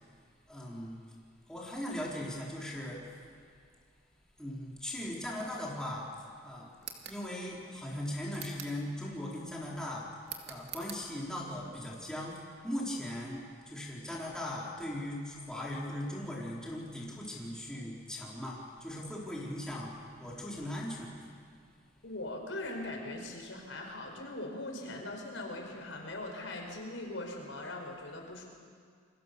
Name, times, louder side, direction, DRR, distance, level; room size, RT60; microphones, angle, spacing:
voice 1, 0.5-1.0 1.5-3.0 4.4-6.1 6.4-6.7 7.1-10.1 10.5-12.4 12.6-19.9 20.2-21.1, left 1 dB, 5° left, -4 dB, 4.3 m, -39 dB
sound 1, 6.8-7.2 8.3-8.8 10.2-11.0, right 8 dB, 60° right, 2.5 m, -44 dB
voice 2, 22.0-28.4, left 2 dB, 80° left, 2 dB, 5.0 m, -40 dB
29.0 x 23.0 x 6.9 m, 2.1 s
head